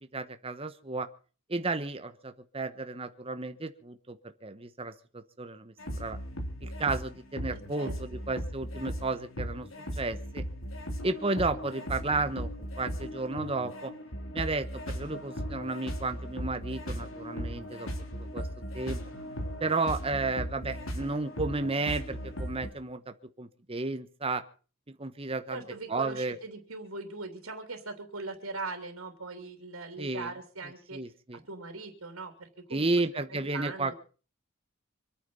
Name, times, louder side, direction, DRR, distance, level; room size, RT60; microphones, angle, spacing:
voice 1, 0.1-1.1 1.5-6.2 6.6-9.7 10.0-10.4 11.0-12.5 12.8-13.9 14.3-17.9 18.2-18.5 18.7-19.0 19.6-24.4 25.0-25.6 25.9-26.4 30.0-30.3 30.9-31.4 32.7-33.9, right 3 dB, 25° right, 9 dB, 1.1 m, -33 dB
sound 1, 5.8-22.7, equal, 65° left, 3.9 m, -38 dB
voice 2, 7.5-7.9 25.5-31.0 31.3-32.9 33.3-33.9, right 3 dB, 80° right, 5 dB, 3.4 m, -40 dB
26.0 x 9.4 x 5.6 m, 0.39 s
head